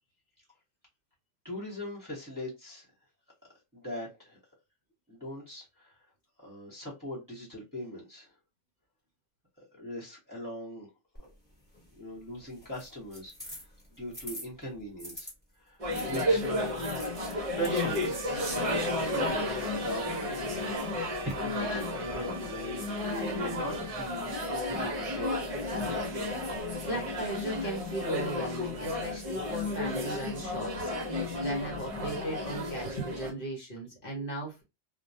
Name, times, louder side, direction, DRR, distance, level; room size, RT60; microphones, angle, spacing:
voice 1, 1.4-2.9 3.7-4.4 5.1-5.9 6.4-8.3 9.8-10.9 12.0-13.6 14.0-15.3 15.6-15.8 16.0-16.6 17.6-20.6 21.2-24.3 24.6-25.4, equal, 20° right, 0.9 m, -40 dB
sound 1, 11.2-15.3 15.9-21.3, equal, 10° left, 1.0 m, -49 dB
sound 2, 15.8-33.3, left 1 dB, 40° right, 0.6 m, -32 dB
sound 3, 17.7-24.0, right 8 dB, 70° right, 0.8 m, -47 dB
voice 2, 26.8-30.9 31.4-34.6, right 1 dB, 55° left, 0.9 m, -37 dB
2.2 x 2.2 x 2.6 m
omnidirectional pair, 1.2 m